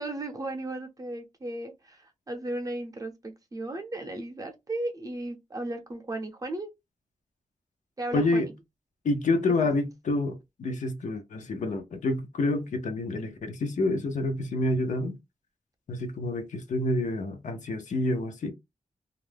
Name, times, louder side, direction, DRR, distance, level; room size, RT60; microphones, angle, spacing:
voice 1, 0.0-6.7 8.0-8.5, right 2 dB, 30° right, 0.6 m, -35 dB
voice 2, 8.1-8.5 9.0-15.2 15.9-18.5, left 2 dB, 75° left, 0.6 m, -28 dB
2.4 x 2.1 x 3.3 m
wide cardioid pair, 155°, 13 cm